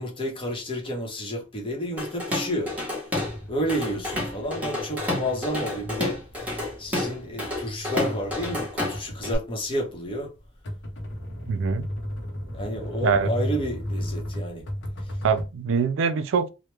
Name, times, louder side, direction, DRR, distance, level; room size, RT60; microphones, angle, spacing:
voice 1, 0.0-2.7 3.5-6.2 6.8-10.3 12.5-14.6, equal, 25° left, 0.9 m, -30 dB
Drum kit / Drum, 2.0-3.4 3.7-9.3, left 1 dB, 5° right, 1.1 m, -30 dB
sound 1, 3.1-15.5, equal, 60° left, 0.8 m, -35 dB
voice 2, 11.5-11.9 13.0-13.3 15.2-16.5, right 5 dB, 65° right, 0.4 m, -23 dB
3.1 x 2.1 x 3.2 m
head